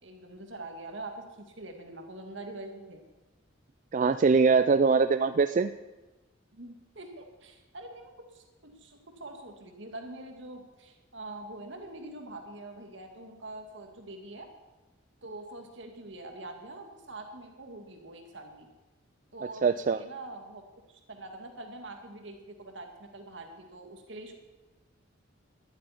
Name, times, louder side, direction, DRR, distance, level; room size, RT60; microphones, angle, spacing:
voice 1, 0.0-3.0 6.5-14.5 15.2-18.7 19.3-24.3, right 2 dB, 65° right, 4 dB, 2.2 m, -44 dB
voice 2, 3.9-5.7 19.6-20.0, right 4 dB, 40° right, 11 dB, 0.4 m, -22 dB
11.5 x 8.7 x 9.9 m, 1.1 s
head